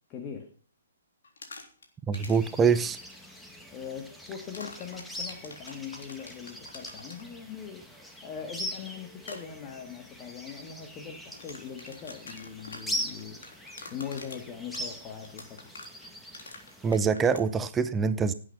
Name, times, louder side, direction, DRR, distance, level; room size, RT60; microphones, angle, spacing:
voice 1, 0.1-0.5 3.7-13.4 13.9-15.7, left 7 dB, 25° left, 4 dB, 2.2 m, -41 dB
sound 1, 1.2-1.8 2.1-2.5 4.5-7.2 9.2-9.4 11.2-17.4, left 3 dB, 65° left, 3.5 m, -45 dB
sound 2, 2.1-17.0, equal, 5° left, 1.8 m, -42 dB
voice 2, 2.1-3.0 16.8-18.3, right 6 dB, 15° right, 12 dB, 0.8 m, -24 dB
17.5 x 8.7 x 5.7 m, 0.43 s
figure-of-eight pair, 125°, 0 cm